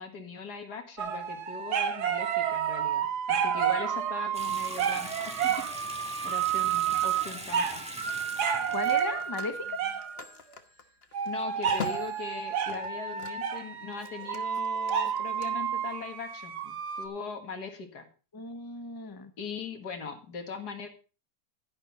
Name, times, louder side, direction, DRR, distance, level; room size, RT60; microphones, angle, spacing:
voice 1, 0.0-5.7 6.2-7.8 11.3-18.1 19.4-20.9, left 5 dB, 75° left, 6 dB, 2.3 m, -40 dB
sound 1, 1.0-10.2 11.1-17.1, right 8 dB, 80° right, 1.6 m, -30 dB
Water tap faucet / Sink (filling or washing) / Bathtub (filling or washing), 4.3-10.0, equal, 5° right, 1.6 m, -43 dB
Telephone, 6.7-6.8 8.8-13.6 13.9-15.5, left 6 dB, 40° left, 1.3 m, -44 dB
voice 2, 8.7-9.8 18.3-19.3, left 3 dB, 15° left, 8 dB, 0.9 m, -36 dB
11.5 x 11.0 x 4.1 m, 0.35 s
omnidirectional pair, 1.7 m